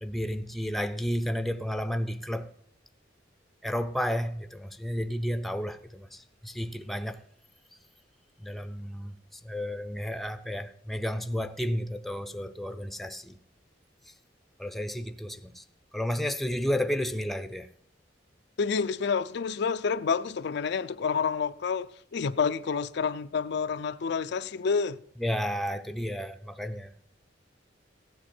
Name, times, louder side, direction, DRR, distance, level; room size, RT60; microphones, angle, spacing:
voice 1, 0.0-2.5 3.6-7.2 8.4-9.2 9.4-13.4 14.6-15.6 15.9-17.7 25.2-26.9, equal, ahead, 0.6 m, -32 dB
voice 2, 18.6-25.0, left 5 dB, 65° left, 0.4 m, -29 dB
15.5 x 10.5 x 4.3 m
head